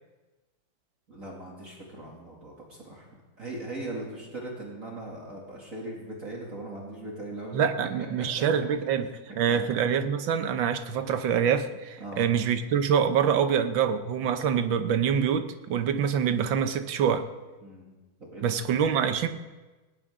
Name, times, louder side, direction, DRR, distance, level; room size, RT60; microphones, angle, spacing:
voice 1, 1.1-3.1 3.4-7.7 8.2-8.4 9.0-9.1 9.5-9.7 12.0-12.3 17.6-17.9 18.2-18.6, right 2 dB, 40° right, -3 dB, 2.9 m, -39 dB
voice 2, 7.5-9.1 9.4-17.3 18.4-19.3, right 7 dB, 70° right, 9 dB, 1.6 m, -25 dB
19.5 x 18.0 x 3.7 m, 1.2 s
omnidirectional pair, 2.2 m